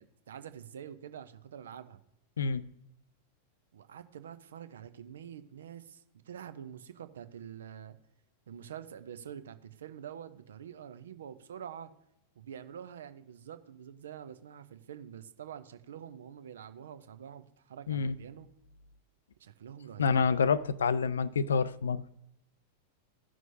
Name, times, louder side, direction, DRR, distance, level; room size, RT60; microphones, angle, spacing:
voice 1, 0.0-2.0 3.7-8.0 8.5-11.9 12.4-18.5 19.4-20.3, right 9 dB, 65° right, 0.7 m, -46 dB
voice 2, 20.0-22.0, left 5 dB, 70° left, 0.4 m, -27 dB
15.5 x 6.1 x 2.7 m
figure-of-eight pair, 90°, 0 cm